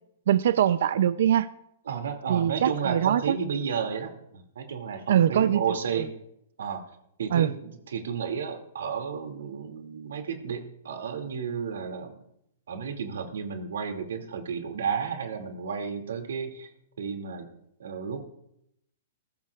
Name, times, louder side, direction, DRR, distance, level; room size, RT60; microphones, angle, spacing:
voice 1, 0.3-1.5 2.3-3.4 5.1-5.6 5.9-6.1 7.3-7.5, right 10 dB, 65° right, 14 dB, 0.5 m, -22 dB
voice 2, 1.9-6.1 6.6-6.8 7.2-12.2 12.7-16.7 17.0-17.5 17.8-18.2, right 6 dB, 85° right, 5 dB, 2.5 m, -32 dB
20.5 x 15.0 x 2.4 m, 0.76 s
hypercardioid pair, 165°, 0 cm